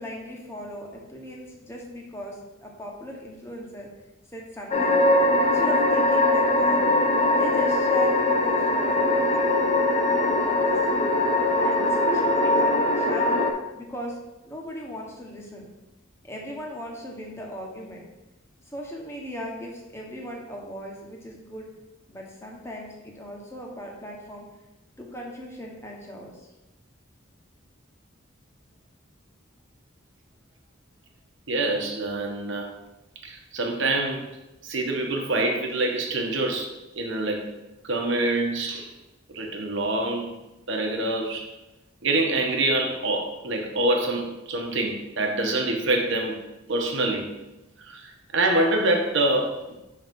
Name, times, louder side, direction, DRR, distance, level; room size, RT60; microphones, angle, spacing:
voice 1, 0.0-2.4 2.6-3.9 4.3-5.0 5.4-6.9 7.3-9.5 9.8-11.0 11.6-13.4 13.7-14.2 14.4-15.7 16.2-18.0 18.7-21.7 22.1-24.5 25.0-26.5, equal, 15° left, -1 dB, 1.2 m, -38 dB
sound 1, 4.7-13.5, left 2 dB, 30° left, 0.6 m, -21 dB
voice 2, 31.5-32.7 33.2-34.2 34.6-37.5 37.8-38.9 39.3-40.3 40.7-41.5 42.0-46.4 46.7-47.3 47.8-49.8, right 2 dB, 65° right, 2 dB, 1.1 m, -25 dB
6.0 x 3.9 x 5.2 m, 0.99 s
head